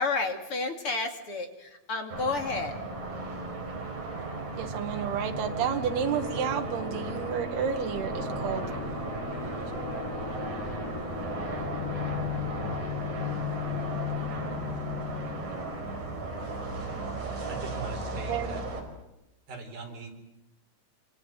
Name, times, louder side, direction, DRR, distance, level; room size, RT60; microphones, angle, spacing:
voice 1, 0.0-2.7, left 3 dB, 40° left, 5 dB, 3.0 m, -31 dB
sound 1, 2.1-18.8, right 3 dB, 50° right, 6.2 m, -35 dB
voice 2, 4.6-8.6 9.3-9.7 18.3-18.5, right 7 dB, 80° right, 5 dB, 3.9 m, -31 dB
sound 2, 5.5-14.8, left 9 dB, 90° left, 1.3 m, -43 dB
sound 3, 8.1-15.4, left 13 dB, 70° left, 1.0 m, -37 dB
voice 3, 17.5-18.6 19.5-20.1, right 3 dB, 65° right, 4 dB, 6.4 m, -40 dB
27.5 x 27.0 x 7.7 m, 0.92 s
omnidirectional pair, 4.5 m